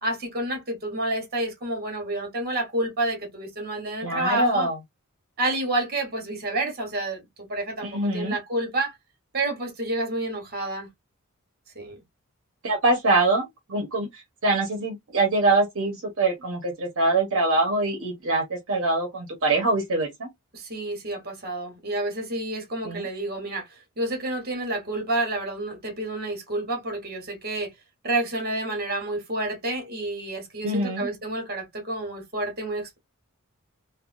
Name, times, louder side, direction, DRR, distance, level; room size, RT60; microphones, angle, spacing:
voice 1, 0.0-4.7 5.4-8.9 9.3-10.9 11.7-12.0 20.5-23.7 24.0-27.7 28.0-33.0, right 2 dB, 45° right, 1.3 m, -29 dB
voice 2, 4.0-4.8 7.8-8.3 12.6-20.3 22.8-23.1 30.6-31.1, right 2 dB, 65° right, 0.9 m, -24 dB
3.3 x 2.2 x 2.5 m
head